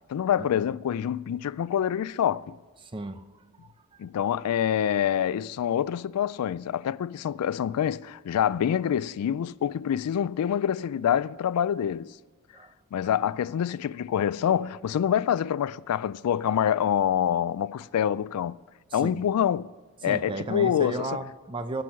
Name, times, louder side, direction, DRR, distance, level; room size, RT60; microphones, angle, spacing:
voice 1, 0.1-2.6 4.0-12.1 12.9-18.6 18.9-19.7 20.0-21.2, left 9 dB, 85° left, 0.3 m, -26 dB
voice 2, 2.8-3.2 3.9-4.0 12.5-12.7 18.9-19.2 20.0-21.8, right 2 dB, 20° right, 0.5 m, -34 dB
16.0 x 6.1 x 5.7 m
head